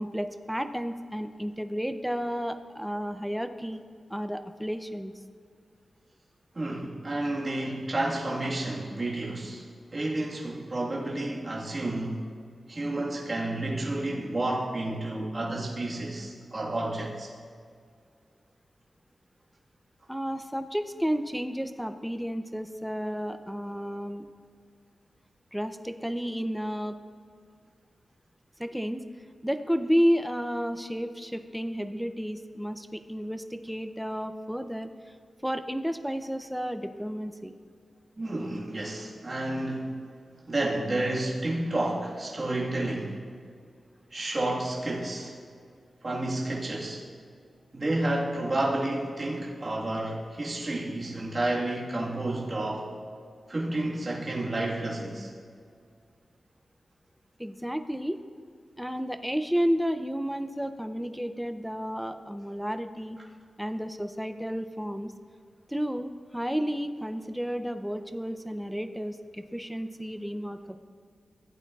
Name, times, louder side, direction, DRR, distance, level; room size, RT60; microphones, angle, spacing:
voice 1, 0.0-3.8 4.1-5.1 20.1-24.2 25.5-26.9 28.6-29.0 29.4-34.9 35.4-37.5 57.4-58.2 58.8-63.2 63.6-65.1 65.7-70.8, equal, ahead, 9 dB, 0.4 m, -31 dB
voice 2, 6.5-9.7 9.9-12.2 12.7-17.3 38.2-39.9 40.4-43.2 44.1-45.3 46.0-47.0 47.7-52.9 53.5-55.3, right 2 dB, 30° right, -4 dB, 1.5 m, -30 dB
15.5 x 8.4 x 2.3 m, 2.2 s
wide cardioid pair, 140°, 0 cm